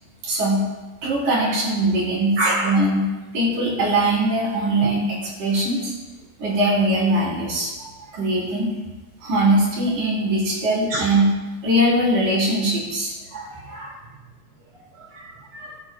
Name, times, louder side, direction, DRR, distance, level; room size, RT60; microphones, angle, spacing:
voice 1, 0.2-0.7 1.0-2.4 2.6-3.0 3.3-5.9 6.4-7.7 8.1-8.7 9.2-11.3 11.6-13.1, right 1 dB, 70° right, -4 dB, 5.7 m, -21 dB
voice 2, 2.4-2.8 8.1-8.2 10.9-11.1 13.3-14.0 15.0-15.8, right 1 dB, 40° right, -2 dB, 3.3 m, -28 dB
18.5 x 13.5 x 2.4 m, 1.2 s
omnidirectional pair, 3.9 m